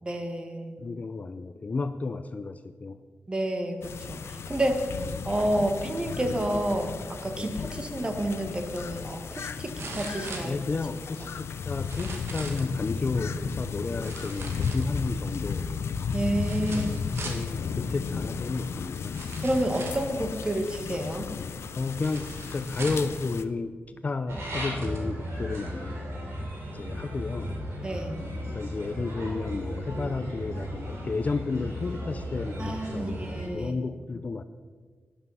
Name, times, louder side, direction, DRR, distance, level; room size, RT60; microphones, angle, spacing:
voice 1, 0.0-0.8 3.3-5.0 5.2-10.6 11.2-11.3 16.1-16.9 19.4-21.3 27.8-28.2 32.6-33.7, right 1 dB, 25° right, 6 dB, 1.3 m, -29 dB
voice 2, 0.8-3.0 7.4-7.5 10.4-15.7 16.7-19.2 21.8-26.0 26.7-27.6 28.5-33.2 33.5-34.4, left 3 dB, 35° left, 11 dB, 0.5 m, -32 dB
sound 1, 3.8-23.4, left 6 dB, 90° left, 0.6 m, -34 dB
sound 2, 8.4-8.5 9.8-11.1 11.8-12.7 14.0-15.2 16.4-17.5 18.5-18.6 19.1-20.1 22.0-23.2 24.0-24.1 24.5-25.1 25.7-25.8, right 3 dB, 70° right, 1.9 m, -41 dB
sound 3, 24.3-33.5, equal, 85° right, 4.0 m, -35 dB
12.0 x 10.0 x 5.5 m, 1.5 s
wide cardioid pair, 150°, 4 cm